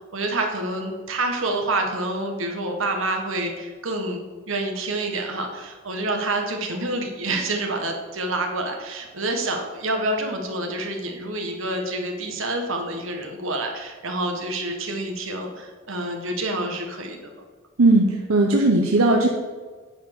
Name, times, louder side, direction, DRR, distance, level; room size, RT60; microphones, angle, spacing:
voice 1, 0.1-17.4, right 2 dB, 70° right, 3 dB, 1.5 m, -28 dB
voice 2, 17.8-19.3, right 2 dB, 90° right, 1 dB, 0.9 m, -17 dB
9.3 x 4.5 x 6.9 m, 1.4 s
head